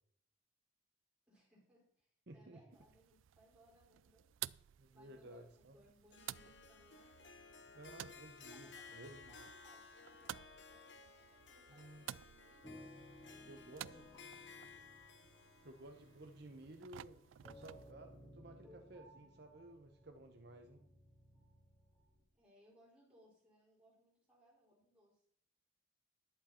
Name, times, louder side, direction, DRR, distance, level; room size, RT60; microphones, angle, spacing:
voice 1, 1.3-4.3 4.9-8.1 8.5-12.7 13.2-14.9 22.3-25.3, equal, 5° right, -6 dB, 5.2 m, -69 dB
voice 2, 2.3-2.6 4.8-5.8 7.7-9.5 11.7-12.0 13.5-14.0 15.6-17.2 17.5-20.8, right 1 dB, 55° right, 5 dB, 0.9 m, -55 dB
sound 1, 2.7-17.9, right 13 dB, 75° right, 0.3 m, -54 dB
Harp, 6.1-17.4, left 5 dB, 60° left, 1.0 m, -58 dB
sound 2, 12.6-22.2, left 1 dB, 30° left, 5.6 m, -60 dB
11.5 x 9.4 x 4.4 m, 0.65 s
head